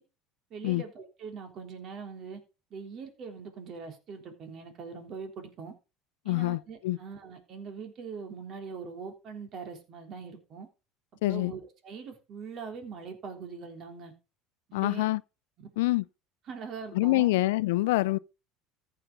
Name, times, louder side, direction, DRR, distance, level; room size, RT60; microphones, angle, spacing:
voice 1, 0.5-2.4 2.7-5.7 6.2-10.7 11.2-14.1 14.7-15.1 15.6-15.7 16.5-17.3, right 5 dB, 50° right, 3.4 m, -42 dB
voice 2, 6.3-7.0 11.2-11.5 14.7-15.2 15.8-16.0 16.9-18.2, left 19 dB, 80° left, 0.4 m, -26 dB
14.5 x 6.8 x 3.6 m
supercardioid pair, 90°, 0 cm